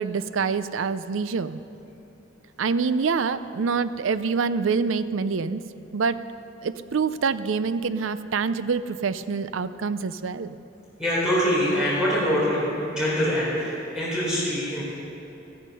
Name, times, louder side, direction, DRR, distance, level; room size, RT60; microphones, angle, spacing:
voice 1, 0.0-1.6 2.6-5.6 5.9-6.2 6.6-10.6, right 5 dB, 75° right, 14 dB, 0.5 m, -26 dB
voice 2, 11.0-14.8, equal, 5° right, -8 dB, 4.0 m, -24 dB
14.5 x 13.5 x 5.5 m, 2.9 s
head